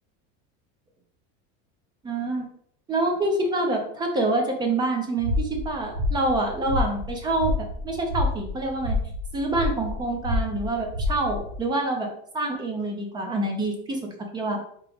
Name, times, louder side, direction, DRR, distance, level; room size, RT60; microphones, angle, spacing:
voice 1, 2.0-2.4 2.9-7.5 7.8-9.0 9.3-14.0 14.3-14.6, right 2 dB, 10° right, 3 dB, 0.4 m, -26 dB
sound 1, 5.2-11.6, left 2 dB, 80° right, 1.2 m, -29 dB
4.8 x 2.9 x 3.4 m, 0.65 s
supercardioid pair, 165°, 40 cm